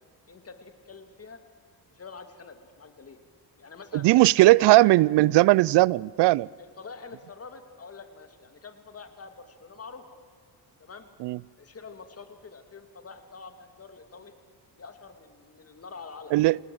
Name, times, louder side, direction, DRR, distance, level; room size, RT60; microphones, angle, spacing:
voice 1, 0.3-1.4 1.9-3.2 3.6-4.1 4.4-4.9 6.6-10.0 10.8-11.1 11.6-14.3 14.8-16.3, left 4 dB, 35° left, 2.5 m, -45 dB
voice 2, 4.0-6.5 11.2-11.4 16.3-16.6, right 18 dB, 75° right, 0.5 m, -18 dB
28.0 x 18.5 x 7.9 m
cardioid pair, 100°, 41 cm